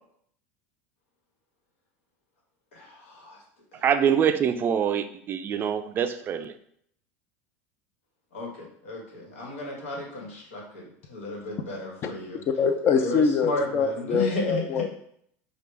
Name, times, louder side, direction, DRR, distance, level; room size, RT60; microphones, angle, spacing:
voice 1, 2.7-3.4 3.7-3.8 8.3-12.4 13.0-14.8, left 2 dB, 90° left, -2 dB, 1.5 m, -33 dB
voice 2, 3.8-6.5, right 8 dB, 30° right, 9 dB, 0.4 m, -24 dB
voice 3, 12.6-15.0, left 5 dB, 40° left, 8 dB, 0.5 m, -24 dB
5.1 x 2.4 x 3.4 m, 0.67 s
supercardioid pair, 110°, 7 cm